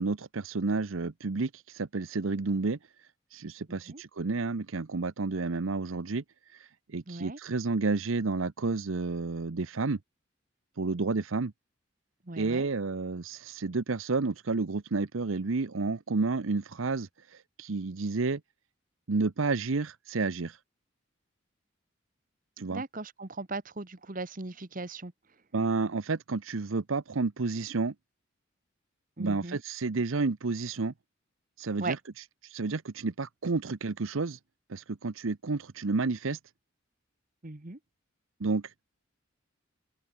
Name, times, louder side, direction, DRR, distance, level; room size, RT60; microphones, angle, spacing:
voice 1, 0.0-2.8 3.3-6.2 6.5-10.0 10.8-11.5 12.4-18.4 19.1-20.6 22.6-22.8 25.5-27.9 29.2-30.9 31.6-32.0 32.4-34.4 34.7-36.4 38.4-38.7, right 3 dB, 80° right, 0.8 m, -30 dB
voice 2, 3.7-4.0 7.1-7.4 12.3-12.7 22.7-25.1 29.2-29.6 31.8-32.0 37.4-37.8, right 3 dB, 40° right, 1.3 m, -38 dB
open air
head